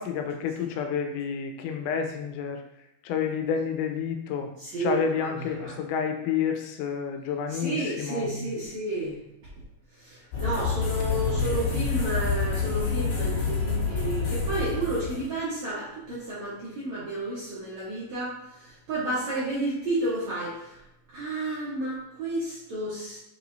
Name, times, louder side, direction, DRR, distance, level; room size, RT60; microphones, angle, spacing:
voice 1, 0.0-2.6 3.0-4.5 4.8-8.3 11.0-11.6, left 7 dB, 90° left, 5 dB, 3.1 m, -30 dB
voice 2, 4.6-5.0 5.5-5.7 7.5-9.2 10.0-20.8 21.1-23.2, right 2 dB, 65° right, -9 dB, 1.8 m, -31 dB
sound 1, 10.3-15.3, left 5 dB, 65° left, 3.2 m, -28 dB
7.4 x 4.9 x 2.7 m, 0.88 s
omnidirectional pair, 5.2 m